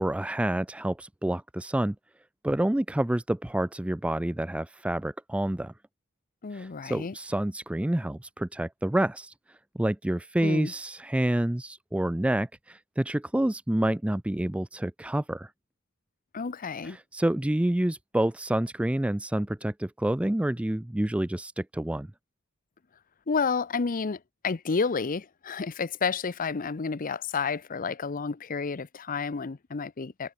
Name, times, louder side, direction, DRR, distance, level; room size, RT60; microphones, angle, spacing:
voice 1, 0.0-2.0 2.4-5.7 6.5-9.3 9.8-15.5 16.9-22.1, right 1 dB, 5° right, 0.3 m, -28 dB
voice 2, 6.4-7.1 10.4-10.7 16.3-17.0 23.3-30.3, left 5 dB, 40° left, 0.6 m, -30 dB
head